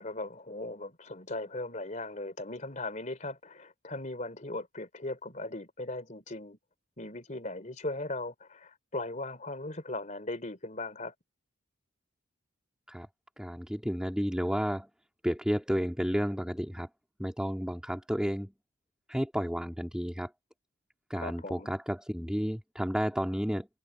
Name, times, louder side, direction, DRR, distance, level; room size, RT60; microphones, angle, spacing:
voice 1, 0.0-6.6 7.0-11.1 21.2-21.7, left 2 dB, 35° left, 3.3 m, -38 dB
voice 2, 13.4-14.9 15.2-16.9 17.2-18.5 19.1-20.3 21.1-23.7, equal, 5° right, 2.3 m, -31 dB
head